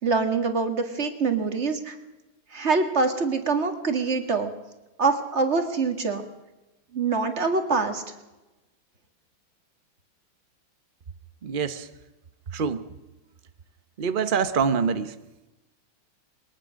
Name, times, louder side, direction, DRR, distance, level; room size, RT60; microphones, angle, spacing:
voice 1, 0.0-2.0 2.5-4.5 5.0-6.2 6.9-8.0, right 4 dB, 35° right, 6 dB, 2.0 m, -24 dB
voice 2, 11.4-11.9 12.5-12.8 14.0-15.2, right 6 dB, 65° right, 10 dB, 0.5 m, -25 dB
22.0 x 19.0 x 6.3 m, 1.0 s
omnidirectional pair, 2.2 m